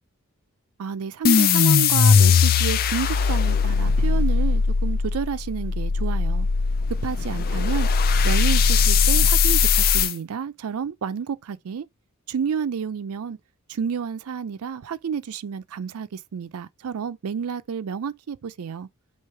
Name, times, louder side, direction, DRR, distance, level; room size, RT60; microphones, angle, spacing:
voice 1, 0.8-6.5 7.0-7.9 8.2-11.9 12.3-13.4 13.7-18.9, right 7 dB, 80° right, 0.4 m, -30 dB
sound 1, 1.2-10.1, left 5 dB, 40° left, 0.3 m, -19 dB
3.2 x 3.0 x 4.4 m
head